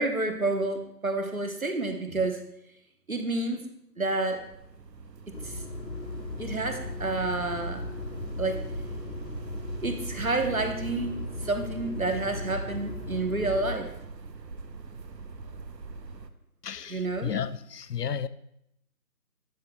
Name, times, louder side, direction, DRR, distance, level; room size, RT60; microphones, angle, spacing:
voice 1, 0.0-2.4 3.1-3.7 4.0-4.4 5.4-5.6 6.4-7.8 8.4-8.6 9.8-13.9 16.9-17.3, right 2 dB, 55° right, 6 dB, 1.0 m, -29 dB
sound 1, 4.4-16.3, right 4 dB, 85° right, 0.8 m, -43 dB
sound 2, 5.3-13.8, left 2 dB, 90° left, 1.5 m, -37 dB
voice 2, 16.6-18.3, left 7 dB, 70° left, 16 dB, 0.5 m, -33 dB
12.0 x 6.2 x 2.2 m, 0.78 s
figure-of-eight pair, 180°, 49 cm